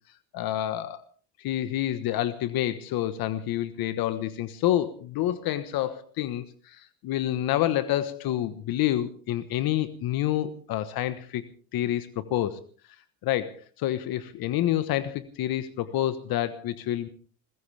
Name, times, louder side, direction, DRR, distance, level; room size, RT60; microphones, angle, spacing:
voice 1, 0.3-1.1 1.4-11.4 11.7-12.6 13.2-17.1, left 12 dB, 55° left, 13 dB, 1.4 m, -28 dB
27.0 x 15.5 x 3.4 m, 0.40 s
supercardioid pair, 100°, 43 cm